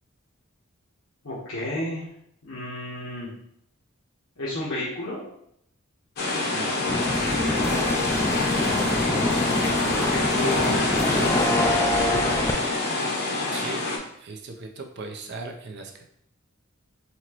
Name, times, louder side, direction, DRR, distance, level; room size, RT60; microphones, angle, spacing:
voice 1, 1.2-2.1 2.4-3.3 4.4-5.2 8.8-12.7, left 1 dB, 90° left, -10 dB, 1.2 m, -32 dB
sound 1, 6.2-14.0, left 2 dB, 50° left, 0.8 m, -26 dB
voice 2, 6.5-7.5 13.5-13.8 14.2-16.0, right 3 dB, 55° right, 3 dB, 0.6 m, -38 dB
sound 2, 6.9-12.5, left 1 dB, 15° left, 0.3 m, -26 dB
4.3 x 2.9 x 3.0 m, 0.73 s
head